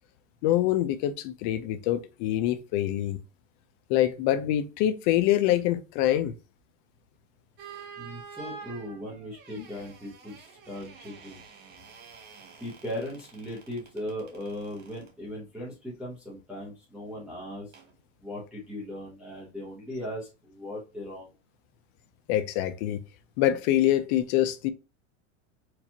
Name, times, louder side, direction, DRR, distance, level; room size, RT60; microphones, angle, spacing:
voice 1, 0.4-3.2 3.9-6.3 22.3-23.0 23.4-24.7, left 13 dB, 40° left, 0.5 m, -25 dB
sound 1, 7.6-15.1 17.7-17.9, right 6 dB, 25° right, 0.7 m, -48 dB
voice 2, 8.0-11.4 12.6-17.7 18.2-21.3, left 1 dB, 5° right, 0.9 m, -38 dB
4.5 x 2.4 x 2.8 m
supercardioid pair, 155°, 38 cm